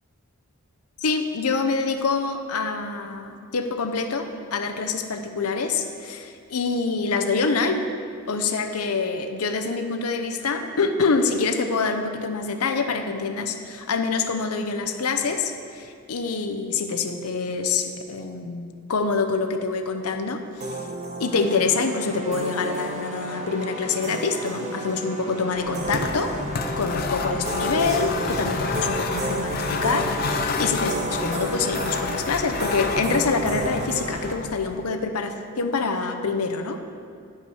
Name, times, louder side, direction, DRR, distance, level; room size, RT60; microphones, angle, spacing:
voice 1, 1.0-7.8 8.3-20.8 21.2-26.3 26.8-36.8, left 4 dB, 80° left, 6 dB, 0.7 m, -26 dB
sound 1, 20.6-34.3, right 1 dB, 30° right, 0.7 m, -32 dB
sound 2, 25.6-34.9, left 4 dB, 45° left, 0.5 m, -30 dB
10.5 x 5.5 x 4.9 m, 2.2 s
head